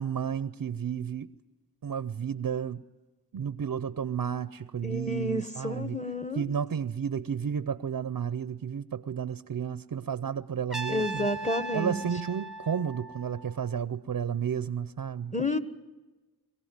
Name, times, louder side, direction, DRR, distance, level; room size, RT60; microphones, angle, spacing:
voice 1, 0.0-1.3 1.8-2.8 3.3-6.0 6.3-11.3 11.7-15.3, right 7 dB, 55° right, 0.6 m, -32 dB
voice 2, 4.8-6.5 10.9-12.0 15.3-15.6, left 1 dB, 20° left, 1.3 m, -30 dB
Trumpet, 10.7-13.7, right 2 dB, ahead, 0.9 m, -38 dB
22.5 x 16.0 x 9.4 m
wide cardioid pair, 55°, 41 cm